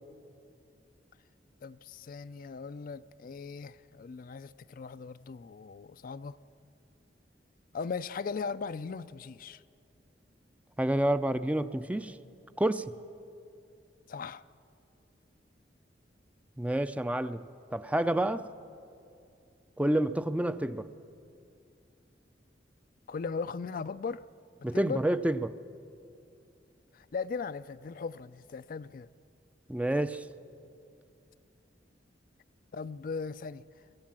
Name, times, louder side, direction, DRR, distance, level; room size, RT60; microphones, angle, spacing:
voice 1, 1.6-6.4 7.7-9.6 14.1-14.4 23.1-24.2 24.7-25.0 26.9-29.1 32.7-33.6, left 5 dB, 50° left, 0.4 m, -38 dB
voice 2, 10.8-12.2 12.6-12.9 16.6-17.4 17.7-18.5 19.8-20.9 24.6-25.5 29.7-30.3, right 1 dB, 10° right, 0.4 m, -28 dB
23.5 x 15.0 x 7.4 m
head